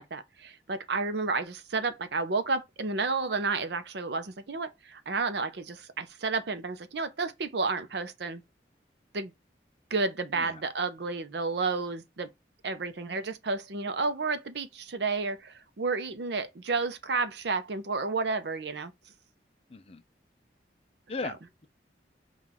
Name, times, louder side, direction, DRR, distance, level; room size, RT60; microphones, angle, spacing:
voice 1, 0.0-8.4 9.1-9.3 9.9-12.3 12.6-18.9 21.2-21.3, right 4 dB, 65° right, 0.6 m, -31 dB
voice 2, 19.7-20.0 21.1-21.7, left 3 dB, 35° left, 0.4 m, -38 dB
5.7 x 2.4 x 3.5 m
head